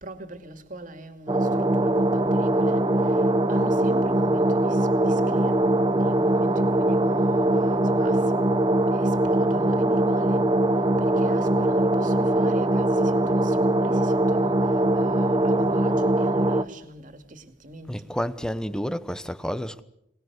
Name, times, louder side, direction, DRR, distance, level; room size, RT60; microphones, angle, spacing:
voice 1, 0.0-3.2 3.5-10.5 11.0-14.6 14.9-18.1, right 1 dB, 45° right, 2.4 m, -42 dB
sound 1, 1.3-16.6, right 1 dB, 25° right, 0.9 m, -22 dB
voice 2, 17.9-19.8, equal, 5° left, 1.0 m, -30 dB
25.5 x 19.5 x 8.1 m
head